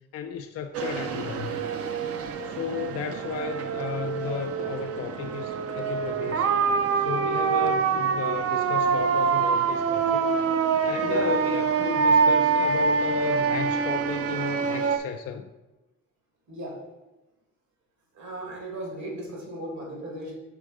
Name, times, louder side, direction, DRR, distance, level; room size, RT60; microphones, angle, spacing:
voice 1, 0.1-1.7 2.4-6.5 6.9-10.3 10.8-15.5, left 8 dB, 50° left, 6 dB, 0.4 m, -34 dB
sound 1, 0.7-15.0, right 5 dB, 50° right, 0.6 m, -25 dB
voice 2, 10.9-11.5 16.5-16.8 18.1-20.3, right 1 dB, 70° right, -1 dB, 2.1 m, -35 dB
5.0 x 3.9 x 4.8 m, 1.0 s
cardioid pair, 90°, 30 cm